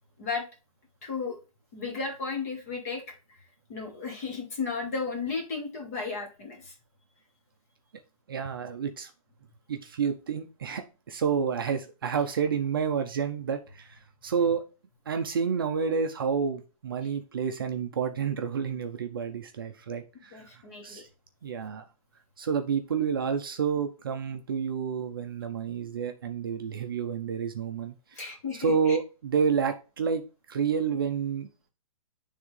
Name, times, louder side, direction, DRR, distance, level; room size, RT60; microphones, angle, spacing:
voice 1, 1.0-1.4 1.7-3.0 3.7-6.7 20.3-21.1 28.2-29.0, left 4 dB, 25° left, 2 dB, 1.3 m, -34 dB
voice 2, 8.3-9.1 9.7-14.6 15.1-21.1 21.4-21.8 22.4-28.2 28.6-30.2 30.5-31.5, right 6 dB, 40° right, 6 dB, 0.5 m, -29 dB
9.3 x 3.5 x 3.2 m, 0.32 s
hypercardioid pair, 175°, 19 cm